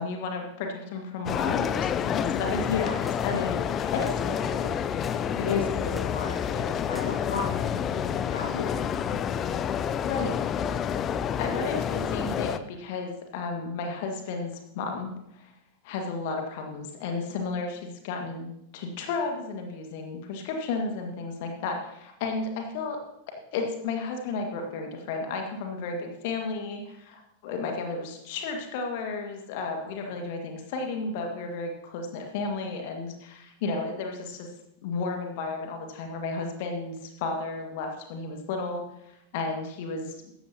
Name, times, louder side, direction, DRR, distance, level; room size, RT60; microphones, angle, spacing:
voice 1, 0.0-2.7 3.2-3.4 3.7-4.7 10.0-10.3 11.2-15.5 15.8-23.0 23.3-34.5 34.8-40.3, left 3 dB, 50° left, 3 dB, 1.9 m, -33 dB
sound 1, 1.3-12.6, left 8 dB, 30° left, 0.5 m, -29 dB
voice 2, 2.6-3.0 3.3-3.7 5.4-9.2 29.8-29.9, left 5 dB, 70° left, 1 dB, 1.8 m, -33 dB
sound 2, 3.1-3.3 4.1-4.2 5.0-5.3 6.0-6.2 6.9-7.2, left 1 dB, 5° left, 0.9 m, -47 dB
15.0 x 12.5 x 2.9 m, 0.78 s
figure-of-eight pair, 90°, 0 cm